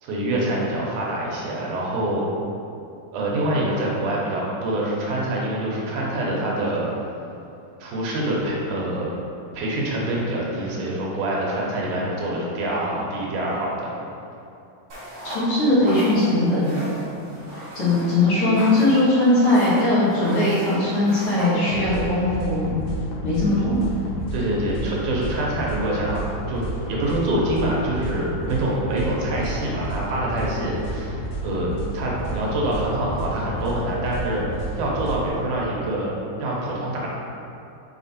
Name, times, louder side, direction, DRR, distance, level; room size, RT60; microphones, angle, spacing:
voice 1, 0.0-2.2 3.1-6.9 7.8-9.1 9.5-13.9 24.3-36.1 36.4-37.1, right 1 dB, 80° right, -4 dB, 2.5 m, -25 dB
sound 1, 14.9-22.1, equal, 50° right, 2.2 m, -36 dB
voice 2, 15.2-16.7 17.7-22.8 23.2-23.7, left 2 dB, 50° left, -10 dB, 2.2 m, -20 dB
sound 2, 21.7-35.3, right 1 dB, 70° left, 1.6 m, -31 dB
6.2 x 4.0 x 4.2 m, 2.7 s
omnidirectional pair, 3.6 m